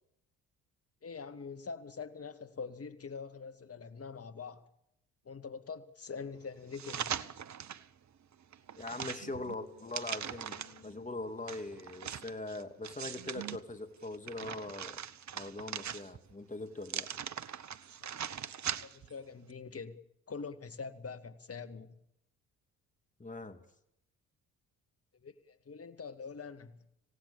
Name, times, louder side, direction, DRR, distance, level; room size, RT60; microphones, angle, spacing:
voice 1, 1.0-4.7 5.2-7.2 18.0-18.3 18.8-20.0 20.3-22.0 25.2-26.8, left 5 dB, 35° left, 2.3 m, -44 dB
sound 1, 6.7-7.9 8.3-10.9 11.5-13.6 14.0-16.3 16.8-19.1 19.5-19.6, right 9 dB, 40° right, 1.2 m, -41 dB
sound 2, 8.5-14.1, left 6 dB, 75° left, 3.6 m, -62 dB
voice 2, 8.8-10.6 10.8-15.0 15.3-17.1 23.2-23.6, left 2 dB, 15° left, 2.8 m, -42 dB
27.0 x 18.0 x 7.2 m
figure-of-eight pair, 45°, 43 cm